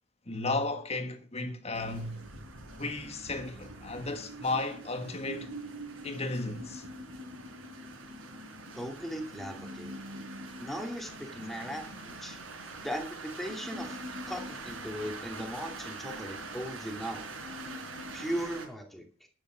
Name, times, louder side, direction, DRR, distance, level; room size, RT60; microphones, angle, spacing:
voice 1, 0.3-2.3 2.8-5.5 6.0-6.8, left 2 dB, 30° left, 1.6 m, -34 dB
sound 1, 1.7-18.7, right 2 dB, 75° right, 5.0 m, -43 dB
voice 2, 8.7-9.9 10.6-12.4 12.8-14.0 14.3-17.2 18.1-19.3, equal, ahead, 2.4 m, -38 dB
12.0 x 8.7 x 6.2 m
head